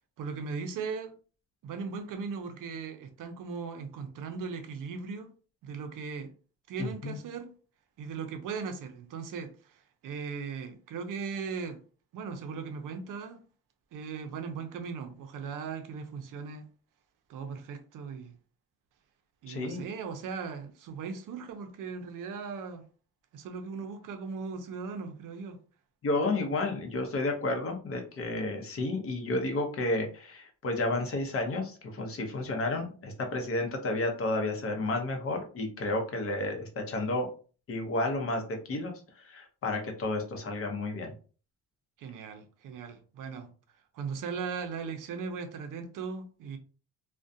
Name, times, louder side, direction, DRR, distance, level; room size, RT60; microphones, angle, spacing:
voice 1, 0.2-1.1 1.6-5.3 5.6-6.3 6.7-7.5 8.0-11.8 12.1-13.4 13.9-16.7 17.3-18.3 19.4-22.8 23.3-25.6 42.0-43.5 43.9-46.6, right 5 dB, 60° right, 0.5 m, -38 dB
voice 2, 6.8-7.2 19.5-19.8 26.0-37.3 37.7-41.1, left 2 dB, 40° left, 0.7 m, -31 dB
2.3 x 2.2 x 2.6 m
cardioid pair, 140°, 36 cm